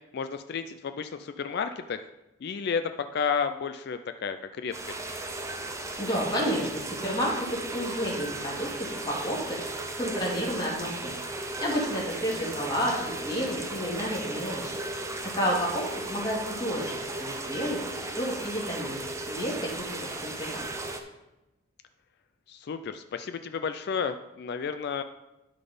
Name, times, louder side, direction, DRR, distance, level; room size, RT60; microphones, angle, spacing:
voice 1, 0.1-2.0 2.4-5.0 22.5-25.0, left 6 dB, 50° left, 9 dB, 0.3 m, -32 dB
sound 1, 4.7-21.0, right 2 dB, 15° right, 0.6 m, -36 dB
voice 2, 6.0-11.2 11.6-14.8 15.3-17.8 18.1-19.0 19.3-20.7, equal, 20° left, -4 dB, 2.2 m, -31 dB
11.5 x 4.0 x 5.3 m, 0.97 s
head